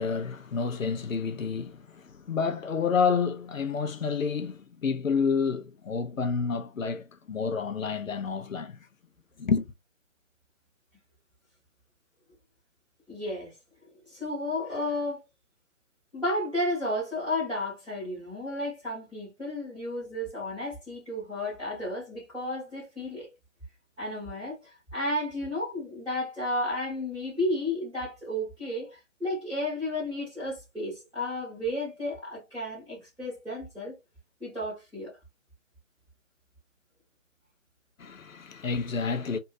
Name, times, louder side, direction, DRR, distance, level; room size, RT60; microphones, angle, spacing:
voice 1, 0.0-8.9 9.4-9.7 38.0-39.4, left 5 dB, 80° left, 0.6 m, -29 dB
voice 2, 13.1-13.5 14.0-15.2 16.1-23.3 24.0-33.9 34.4-35.1, left 1 dB, ahead, 1.0 m, -32 dB
2.8 x 2.6 x 2.4 m
figure-of-eight pair, 160°, 39 cm